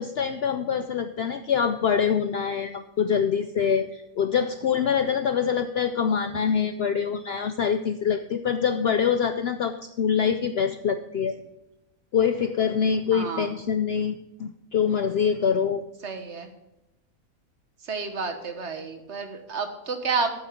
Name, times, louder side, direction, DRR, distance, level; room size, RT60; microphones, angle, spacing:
voice 1, 0.0-11.4 12.1-15.8, left 7 dB, 65° left, 9 dB, 0.6 m, -25 dB
voice 2, 13.1-13.5 16.0-16.5 17.9-20.3, right 4 dB, 55° right, 7 dB, 1.4 m, -30 dB
8.8 x 7.7 x 5.8 m, 0.95 s
omnidirectional pair, 1.5 m